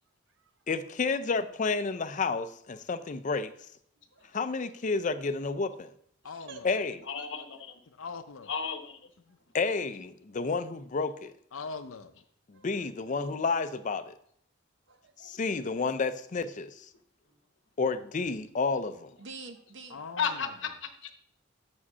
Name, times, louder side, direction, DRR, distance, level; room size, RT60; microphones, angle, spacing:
voice 1, 0.7-3.5 4.3-5.9 6.6-7.0 9.5-11.3 12.5-14.1 15.2-16.9 17.8-19.1, left 4 dB, 40° left, 12 dB, 0.5 m, -30 dB
voice 2, 4.0-4.5 6.2-6.8 7.2-7.3 12.5-12.7 14.9-15.6 17.3-17.4 19.2-20.0, right 4 dB, 60° right, 7 dB, 0.9 m, -49 dB
voice 3, 6.2-6.7 8.0-8.5 9.2-9.4 11.5-12.1 19.9-20.5, left 4 dB, 85° left, 10 dB, 0.6 m, -41 dB
voice 4, 8.5-9.0 20.2-21.1, left 6 dB, 60° left, 7 dB, 0.9 m, -33 dB
7.2 x 4.9 x 5.5 m, 0.66 s
head